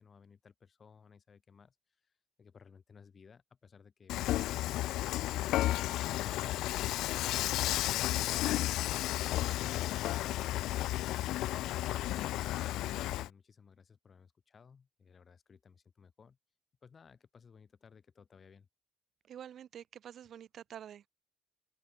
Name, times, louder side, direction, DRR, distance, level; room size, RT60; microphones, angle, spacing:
voice 1, 0.0-1.7 2.0-2.1 2.4-10.7 11.3-16.4 16.8-18.7, left 6 dB, 30° left, 3.1 m, -58 dB
Dishes pots and pans / Frying (food), 4.1-13.3, left 15 dB, 80° left, 0.5 m, -33 dB
voice 2, 19.3-21.1, right 9 dB, 50° right, 1.8 m, -48 dB
open air
cardioid pair, 145°, 0 cm